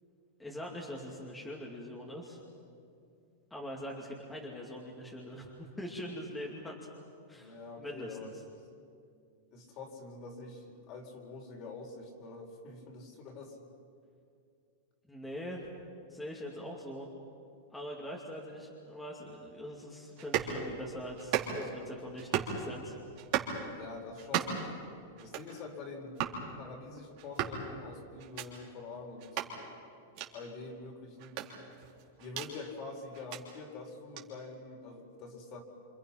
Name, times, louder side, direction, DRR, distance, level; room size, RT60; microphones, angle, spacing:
voice 1, 0.4-2.4 3.5-6.8 7.3-8.3 15.1-15.7 16.1-17.1 17.7-23.0, equal, 5° left, -2 dB, 2.6 m, -43 dB
voice 2, 7.3-8.3 9.5-13.6 23.7-24.6 25.2-26.2 26.6-29.6 30.3-31.4 32.2-35.6, left 3 dB, 40° left, 2 dB, 4.4 m, -45 dB
sound 1, 20.2-20.5 21.2-21.7 22.2-22.6 23.1-23.6 24.2-24.7 25.2-25.5 26.1-26.4 27.2-27.6 28.2-28.5 29.2-29.5 30.1-30.3 31.2-32.5 33.1-33.4 34.1-34.3, right 10 dB, 50° right, 3.5 m, -35 dB
28.0 x 27.0 x 5.9 m, 2.4 s
supercardioid pair, 145°, 0 cm